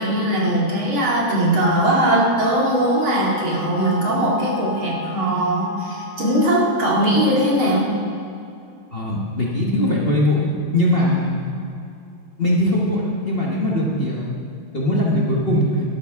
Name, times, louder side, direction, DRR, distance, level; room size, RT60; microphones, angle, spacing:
voice 1, 0.0-7.9, right 1 dB, 75° right, -5 dB, 3.2 m, -20 dB
sound 1, 1.6-6.8, left 7 dB, 65° left, 0.8 m, -32 dB
voice 2, 8.9-11.4 12.4-14.3 14.7-15.8, left 1 dB, 35° left, -4 dB, 1.2 m, -20 dB
12.5 x 11.5 x 3.6 m, 2.5 s
omnidirectional pair, 2.3 m